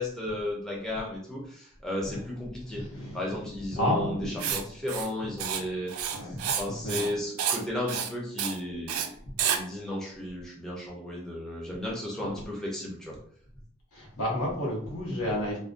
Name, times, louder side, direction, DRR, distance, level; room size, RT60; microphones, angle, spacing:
voice 1, 0.0-2.8 3.1-9.1 9.5-13.2, left 1 dB, 5° left, -5 dB, 0.4 m, -34 dB
voice 2, 2.7-3.3 3.7-4.6 6.1-7.1 9.2-9.4 12.2-12.4 13.9-15.6, left 1 dB, 90° left, -3 dB, 1.0 m, -32 dB
Writing, 4.4-4.6 4.9-5.1 5.4-5.6 5.9-6.6 6.9-7.1 7.4-7.6 7.9-8.1 8.4-8.6 8.9-9.1 9.4-9.6, right 8 dB, 85° right, 0.3 m, -29 dB
2.4 x 2.1 x 2.4 m, 0.62 s
head